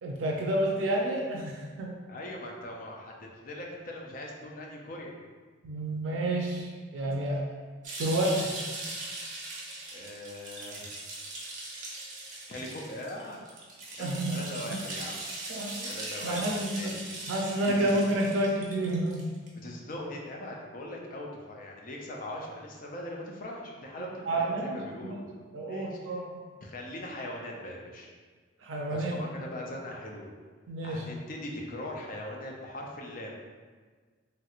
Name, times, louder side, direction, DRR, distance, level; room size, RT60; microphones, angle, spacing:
voice 1, 0.0-2.0 5.6-7.5 8.0-8.5 14.0-14.8 15.5-15.9 16.2-16.9 17.3-19.2 24.3-25.2 25.5-26.4 28.6-29.2 30.7-31.0, right 1 dB, 85° right, -2 dB, 0.4 m, -30 dB
voice 2, 2.1-5.2 9.9-10.9 12.5-13.4 14.0-15.2 15.8-16.9 17.8-18.0 19.6-25.3 25.7-26.0 26.6-28.1 28.9-30.3 30.8-33.4, left 1 dB, 50° left, -1 dB, 0.5 m, -40 dB
sound 1, 7.8-19.5, right 2 dB, 45° right, 0.7 m, -40 dB
3.1 x 2.9 x 2.4 m, 1.5 s
head